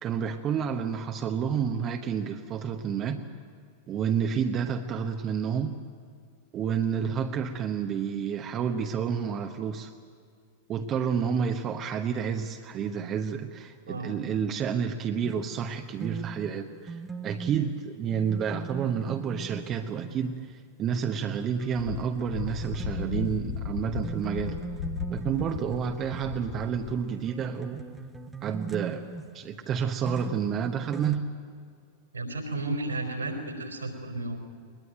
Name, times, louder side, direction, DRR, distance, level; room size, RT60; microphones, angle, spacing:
voice 1, 0.0-3.2 3.9-5.8 6.5-9.9 10.7-24.6 25.1-27.9 28.4-29.1 29.3-31.2, right 7 dB, 30° right, 5 dB, 1.1 m, -30 dB
sound 1, 15.2-20.6 21.0-26.8 27.1-29.7 30.1-31.2, right 4 dB, 10° right, 1.4 m, -40 dB
Wind, 21.7-27.0, left 9 dB, 55° left, 0.7 m, -36 dB
voice 2, 32.1-34.4, right 2 dB, 80° right, 6 dB, 4.1 m, -33 dB
22.0 x 21.0 x 9.2 m, 2.2 s
figure-of-eight pair, 90°, 0 cm